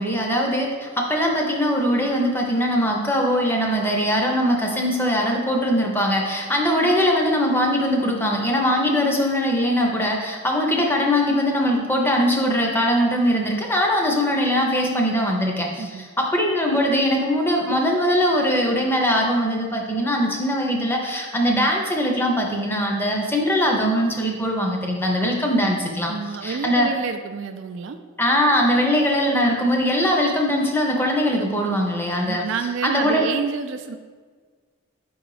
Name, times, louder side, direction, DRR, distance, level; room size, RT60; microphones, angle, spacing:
voice 1, 0.0-26.1 26.4-26.9 28.2-32.4 32.8-33.3, equal, 10° left, 0 dB, 0.6 m, -21 dB
voice 2, 15.8-16.1 26.1-28.0 32.2-34.0, right 5 dB, 60° right, 8 dB, 0.3 m, -29 dB
5.1 x 3.9 x 4.8 m, 1.5 s
head